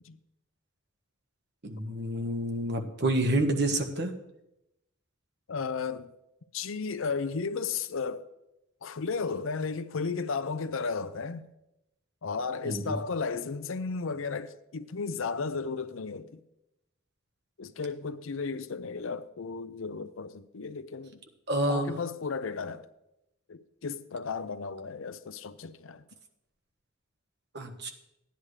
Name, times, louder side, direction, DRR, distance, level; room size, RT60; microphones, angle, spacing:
voice 1, 1.6-4.1 12.6-12.9 21.5-21.9 27.5-27.9, right 1 dB, 55° right, 1.3 m, -28 dB
voice 2, 5.5-6.1 6.5-8.3 8.8-11.5 12.2-16.4 17.6-21.2 21.7-22.9 23.5-26.0, left 4 dB, 75° left, 0.6 m, -34 dB
16.0 x 10.0 x 3.3 m
head